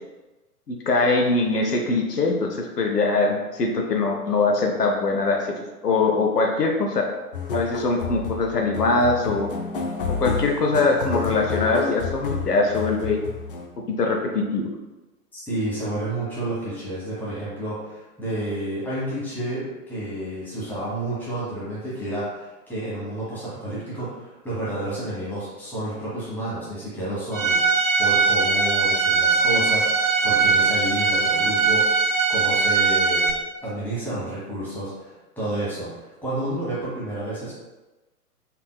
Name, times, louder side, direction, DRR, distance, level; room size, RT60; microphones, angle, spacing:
voice 1, 0.7-5.5 5.8-7.1 7.5-9.5 10.1-13.2 13.9-14.7, left 3 dB, 85° left, 1 dB, 0.7 m, -22 dB
sound 1, 7.3-13.7, left 5 dB, 40° left, 0.5 m, -30 dB
voice 2, 15.3-27.6 28.0-33.3 33.6-37.5, right 1 dB, 5° left, -10 dB, 1.3 m, -30 dB
Bowed string instrument, 27.3-33.3, right 4 dB, 60° right, 0.7 m, -20 dB
4.1 x 3.5 x 2.2 m, 1.1 s
figure-of-eight pair, 115°, 46 cm